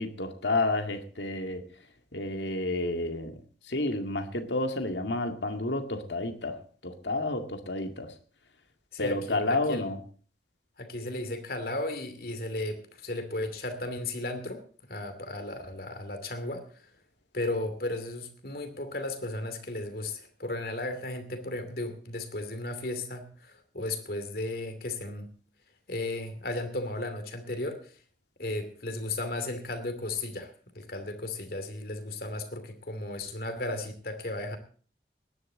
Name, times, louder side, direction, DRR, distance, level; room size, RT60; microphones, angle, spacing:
voice 1, 0.0-1.6 2.1-3.4 3.7-8.1 9.0-10.0, left 2 dB, 80° left, 6 dB, 2.1 m, -30 dB
voice 2, 8.9-9.8 10.8-16.9 17.3-25.3 25.9-28.0 28.4-34.6, left 2 dB, 55° left, 8 dB, 2.7 m, -35 dB
19.5 x 11.0 x 3.9 m, 0.41 s
head